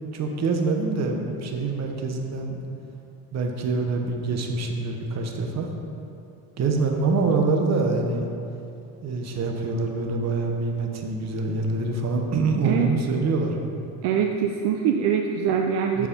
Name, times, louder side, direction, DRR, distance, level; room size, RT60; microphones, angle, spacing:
voice 1, 0.0-2.6 3.3-5.7 6.6-8.3 9.0-13.6 16.0-16.1, right 3 dB, 35° right, 3 dB, 1.0 m, -25 dB
voice 2, 14.0-16.1, right 8 dB, 60° right, 3 dB, 0.6 m, -23 dB
7.0 x 4.8 x 5.2 m, 2.7 s
supercardioid pair, 100°, 46 cm